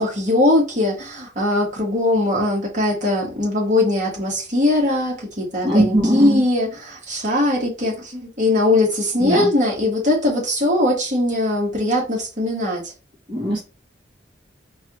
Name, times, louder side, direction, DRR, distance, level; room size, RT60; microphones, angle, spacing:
voice 1, 0.0-12.9, left 1 dB, 40° right, 1.5 m, -20 dB
voice 2, 5.6-6.4 9.2-9.5 13.3-13.6, right 1 dB, 25° right, 1.0 m, -19 dB
4.6 x 2.4 x 3.0 m
head